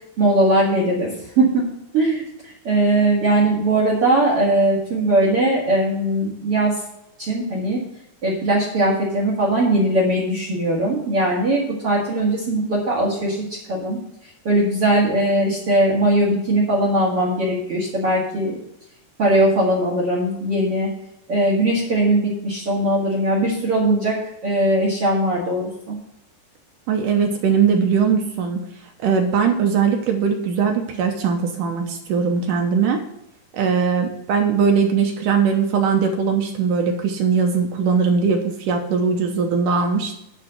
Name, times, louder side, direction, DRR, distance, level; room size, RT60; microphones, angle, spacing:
voice 1, 0.2-1.6 1.9-6.7 7.2-7.8 8.2-18.6 19.2-20.9 21.3-25.9, right 1 dB, 45° right, -4 dB, 2.2 m, -20 dB
voice 2, 26.9-28.6 29.0-33.0 33.5-40.2, right 6 dB, 75° right, 3 dB, 1.9 m, -20 dB
10.5 x 4.9 x 7.8 m, 0.83 s
omnidirectional pair, 4.9 m